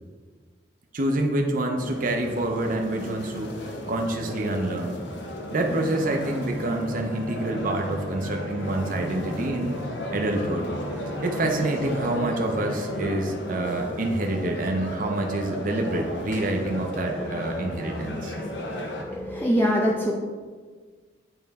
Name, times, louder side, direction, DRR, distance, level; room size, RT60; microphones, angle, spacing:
voice 1, 0.9-3.5 3.9-5.0 5.5-9.8 10.1-10.7 11.2-18.4, right 1 dB, 45° right, 2 dB, 0.6 m, -27 dB
sound 1, 1.8-19.0, left 1 dB, 70° left, 0.8 m, -34 dB
sound 2, 5.9-13.0, left 1 dB, 85° right, 1.8 m, -39 dB
voice 2, 19.0-20.1, equal, 10° left, -3 dB, 0.4 m, -23 dB
8.8 x 3.1 x 3.4 m, 1.5 s
head